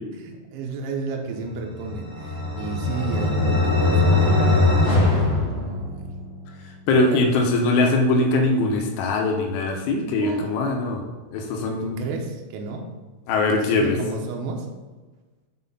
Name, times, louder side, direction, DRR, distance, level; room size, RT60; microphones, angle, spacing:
voice 1, 0.1-6.1 6.9-7.2 10.2-10.5 11.6-12.9 13.7-14.7, right 4 dB, 80° right, 1 dB, 2.9 m, -33 dB
sound 1, 1.7-6.3, left 2 dB, 30° left, 2.3 m, -21 dB
voice 2, 6.9-11.0 11.3-12.1 13.3-14.0, left 2 dB, 85° left, 3 dB, 3.3 m, -21 dB
7.4 x 4.2 x 5.4 m, 1.3 s
omnidirectional pair, 5.6 m